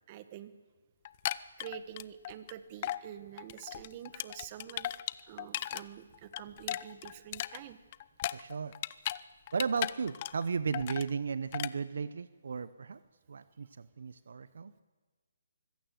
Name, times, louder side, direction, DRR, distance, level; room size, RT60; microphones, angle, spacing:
voice 1, 0.1-0.5 1.6-4.9 5.3-7.8, right 11 dB, 30° right, 12 dB, 1.3 m, -47 dB
sound 1, 1.1-2.5 2.8-3.0 3.4-5.8 6.1-9.2 9.5-10.5 10.7-11.1 11.5-11.7, left 13 dB, 30° left, 0.5 m, -37 dB
voice 2, 8.3-8.7 9.5-13.0 13.3-14.7, right 5 dB, 65° right, 15 dB, 0.8 m, -35 dB
24.0 x 16.0 x 7.7 m, 1.4 s
hypercardioid pair, 160°, 0 cm